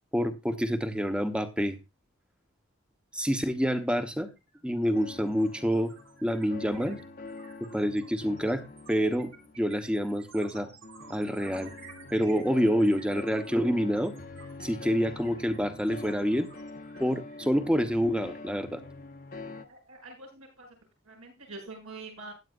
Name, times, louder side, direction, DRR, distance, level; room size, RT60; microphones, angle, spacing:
voice 1, 0.1-1.8 3.1-4.3 4.6-5.9 6.2-7.0 7.7-8.6 8.9-10.7 11.1-11.7 12.1-14.1 14.6-16.5 17.0-18.8, equal, 5° right, 7 dB, 1.1 m, -27 dB
sound 1, 3.8-3.9 4.2-18.6, right 5 dB, 60° right, 4.5 m, -54 dB
sound 2, 4.9-19.6, left 3 dB, 40° left, 1.0 m, -45 dB
voice 2, 19.5-20.7 21.0-22.3, right 3 dB, 80° right, 0 dB, 7.9 m, -45 dB
16.0 x 10.5 x 2.6 m, 0.25 s
head